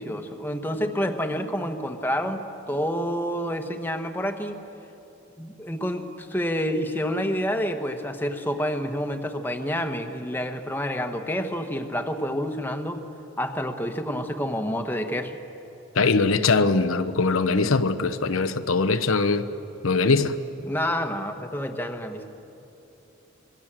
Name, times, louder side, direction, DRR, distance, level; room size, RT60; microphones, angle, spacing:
voice 1, 0.0-4.6 5.4-13.1 13.4-15.4 20.6-22.3, equal, 10° left, 1.2 m, -28 dB
voice 2, 16.0-19.4 19.8-20.3, left 3 dB, 85° left, 0.9 m, -21 dB
26.5 x 22.5 x 7.5 m
head